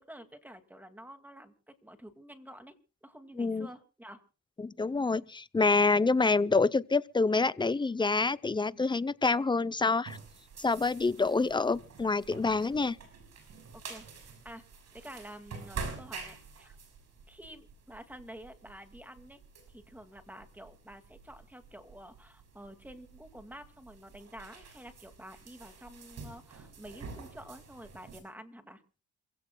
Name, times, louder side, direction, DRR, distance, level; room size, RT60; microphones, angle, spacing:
voice 1, 0.0-2.7 3.0-4.2 5.9-6.2 13.7-14.6 14.9-16.8 17.3-19.4 19.7-28.8, equal, 5° right, 2.2 m, -49 dB
voice 2, 3.4-3.7 4.6-10.2 10.6-13.0, left 3 dB, 15° left, 0.6 m, -27 dB
sound 1, 10.1-28.2, right 4 dB, 60° right, 6.6 m, -48 dB
27.5 x 16.5 x 2.3 m
cardioid pair, 90°, 30 cm